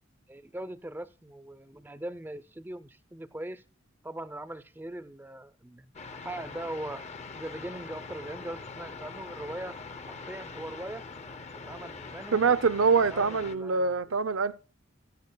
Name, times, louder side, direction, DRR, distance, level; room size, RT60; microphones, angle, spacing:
voice 1, 0.3-3.6 4.0-5.9 6.2-7.0 7.3-9.8 10.1-11.1 11.5-12.5 13.1-14.3, right 1 dB, 10° right, 0.5 m, -40 dB
sound 1, 5.9-13.5, left 4 dB, 35° left, 0.6 m, -43 dB
voice 2, 12.3-14.5, right 5 dB, 75° right, 0.6 m, -24 dB
16.0 x 13.0 x 2.2 m
head